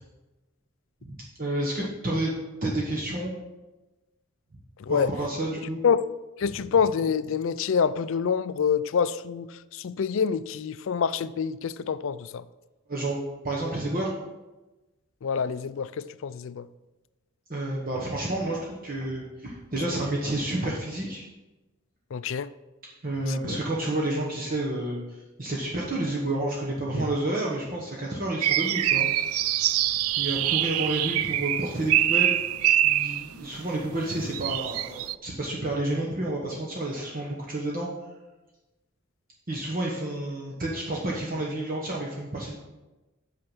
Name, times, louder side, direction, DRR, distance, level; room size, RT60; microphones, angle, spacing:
voice 1, 1.0-3.3 4.9-5.8 12.9-14.1 17.5-21.2 23.0-29.1 30.2-32.4 32.8-37.9 39.5-42.6, right 1 dB, 40° right, 1.1 m, -30 dB
voice 2, 4.8-5.1 5.8-6.1 6.4-9.5 9.7-12.4 15.2-16.7 22.1-22.5 23.3-23.6, left 6 dB, 65° left, 0.4 m, -26 dB
sound 1, 28.4-33.3 34.1-35.1, right 12 dB, 85° right, 0.4 m, -24 dB
8.6 x 5.7 x 5.4 m
head